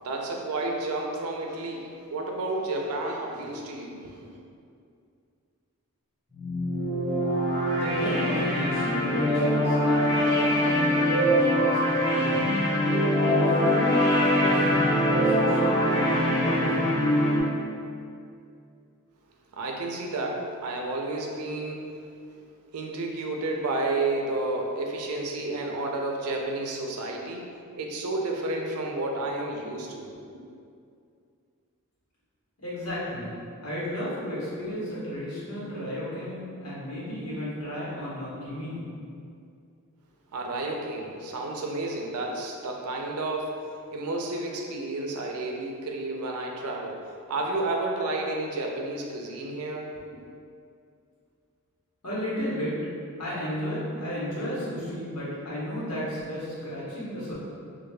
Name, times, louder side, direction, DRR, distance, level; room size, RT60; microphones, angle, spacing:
voice 1, 0.0-4.3 19.5-22.0 22.7-30.2 40.3-43.7 43.9-50.0, right 2 dB, 75° right, 1 dB, 0.5 m, -31 dB
sound 1, 6.3-17.4, equal, 30° left, 1.4 m, -23 dB
voice 2, 7.7-12.5 13.2-14.7 15.2-16.9 32.6-33.3 33.6-38.9 52.0-52.8 53.2-57.3, equal, 90° left, -8 dB, 1.1 m, -33 dB
4.6 x 2.3 x 2.2 m, 2.4 s
head